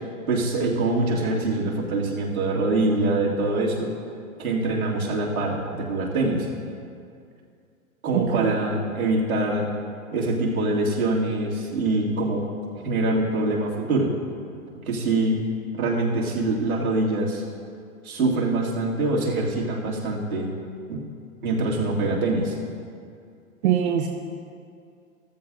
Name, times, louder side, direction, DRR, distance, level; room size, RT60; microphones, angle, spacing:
voice 1, 0.3-3.9 4.4-6.5 8.0-9.7 10.1-12.4 12.8-14.1 14.9-15.4 15.7-17.4 18.0-20.5 20.9-21.0 21.4-22.5, right 2 dB, 80° right, -4 dB, 2.5 m, -24 dB
voice 2, 8.1-8.6 23.6-24.1, right 9 dB, 50° right, 3 dB, 0.9 m, -23 dB
14.0 x 13.5 x 2.6 m, 2.3 s
hypercardioid pair, 120°, 42 cm